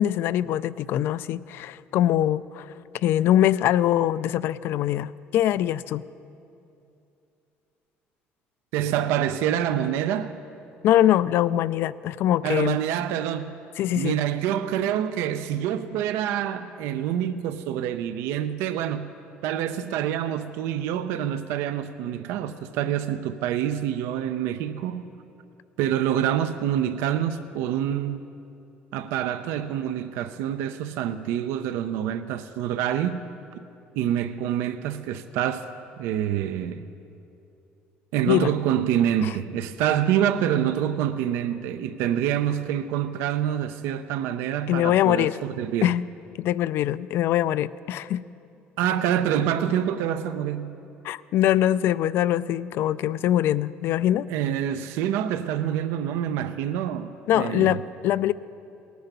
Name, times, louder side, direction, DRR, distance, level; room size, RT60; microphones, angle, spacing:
voice 1, 0.0-2.7 3.0-6.0 10.8-12.8 13.8-14.2 38.3-38.5 39.2-39.3 44.7-45.4 45.8-46.0 46.4-48.2 51.0-54.3 57.3-58.3, left 12 dB, 65° left, 0.4 m, -23 dB
voice 2, 8.7-10.4 12.4-13.6 14.0-19.1 19.4-25.0 25.8-28.2 28.9-33.2 34.0-35.7 36.0-36.9 38.1-45.9 48.8-50.8 54.3-57.8, right 10 dB, 90° right, 0.5 m, -26 dB
18.5 x 9.4 x 6.8 m
cardioid pair, 125°, 4 cm